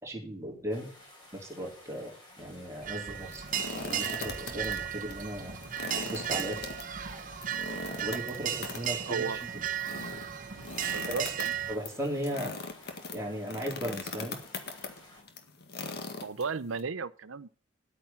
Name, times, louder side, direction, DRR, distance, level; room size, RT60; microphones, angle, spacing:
voice 1, 0.0-0.9 1.3-3.4 3.7-5.6 6.1-6.6 8.0-9.6 11.2-11.3 11.7-12.5 13.1-14.4, equal, 15° right, 3.6 m, -37 dB
sound 1, 0.7-15.2, left 1 dB, 20° left, 4.9 m, -54 dB
sound 2, 2.8-11.7, right 9 dB, 40° right, 1.0 m, -35 dB
sound 3, 3.2-4.8 5.1-5.2 5.6-16.8, left 3 dB, 55° left, 1.8 m, -40 dB
voice 2, 9.1-9.4 10.9-11.5 16.2-17.5, right 5 dB, 80° right, 0.8 m, -35 dB
11.0 x 8.9 x 5.8 m
head